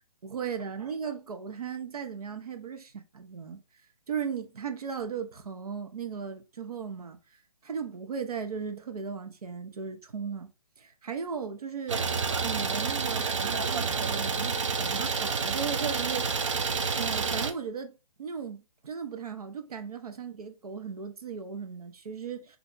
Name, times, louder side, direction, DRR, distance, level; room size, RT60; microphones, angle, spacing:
voice 1, 0.2-3.6 4.1-7.2 7.6-10.5 10.8-12.1 12.4-16.5 17.0-22.6, right 6 dB, 85° right, 0.8 m, -37 dB
Idling, 11.9-17.5, right 5 dB, 55° right, 0.5 m, -29 dB
4.4 x 2.7 x 2.6 m
hypercardioid pair, 175°, 19 cm